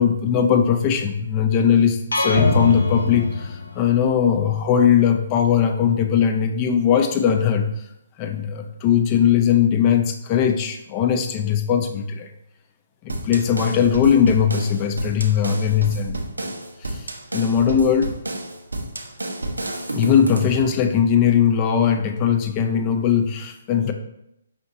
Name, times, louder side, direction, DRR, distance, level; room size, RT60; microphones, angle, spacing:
voice 1, 0.0-7.7 8.2-12.3 13.0-16.5 16.8-17.1 17.3-18.1 19.9-23.9, left 8 dB, 30° left, 6 dB, 0.4 m, -19 dB
sound 1, 2.1-4.1, left 2 dB, 80° left, 0.7 m, -22 dB
sound 2, 13.1-20.6, right 2 dB, 85° right, 0.6 m, -30 dB
5.0 x 2.9 x 2.6 m, 0.81 s
figure-of-eight pair, 135°, 0 cm